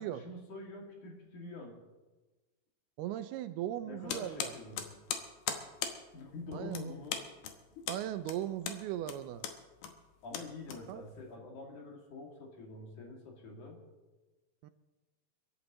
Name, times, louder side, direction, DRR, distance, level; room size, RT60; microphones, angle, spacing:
voice 1, 0.0-1.7 3.8-4.8 6.1-7.2 7.8-7.9 10.2-13.8, left 2 dB, 50° left, -1 dB, 3.3 m, -46 dB
voice 2, 3.0-4.5 6.5-6.9 7.9-9.5 10.9-11.0 14.6-14.7, right 12 dB, 80° right, 10 dB, 2.4 m, -38 dB
sound 1, 4.1-11.3, left 8 dB, 75° left, 3.0 m, -40 dB
30.0 x 11.0 x 3.0 m, 1.2 s
omnidirectional pair, 4.8 m